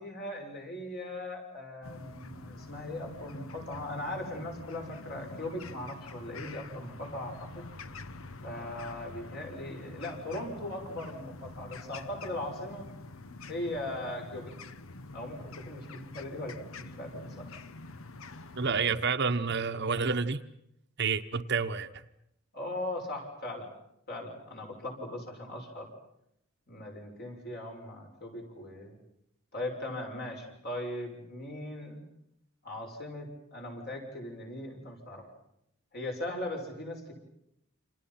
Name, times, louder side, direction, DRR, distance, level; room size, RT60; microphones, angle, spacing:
voice 1, 0.0-7.7 8.4-12.9 13.5-14.5 15.1-17.5 22.5-23.7 24.1-25.9 26.7-29.0 29.5-32.0 32.6-35.3 35.9-37.1, left 1 dB, 45° left, 2 dB, 6.7 m, -39 dB
sound 1, 1.8-19.0, left 3 dB, 65° left, 1.0 m, -46 dB
voice 2, 18.6-20.4 21.0-21.9, right 5 dB, 50° right, 8 dB, 1.1 m, -29 dB
29.5 x 27.0 x 5.8 m, 0.76 s
head